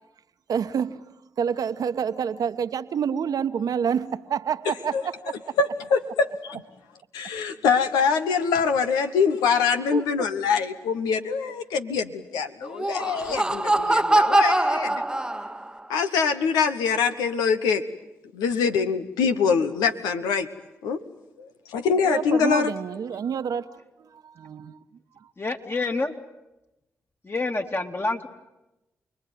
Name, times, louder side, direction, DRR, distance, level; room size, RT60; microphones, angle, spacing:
voice 1, 0.5-1.0 1.4-5.6 9.9-10.3 13.3-13.4 22.0-24.8, right 7 dB, 70° right, 1.2 m, -28 dB
voice 2, 5.6-6.6 7.1-15.0 15.9-17.8 18.3-20.5 20.8-21.0 21.4-22.7, left 6 dB, 90° left, 1.2 m, -24 dB
Laughter, 12.6-15.8, right 1 dB, 10° right, 1.0 m, -23 dB
voice 3, 25.4-26.1 27.2-28.3, left 3 dB, 35° left, 2.7 m, -27 dB
29.0 x 21.0 x 9.5 m
supercardioid pair, 40°, 7 cm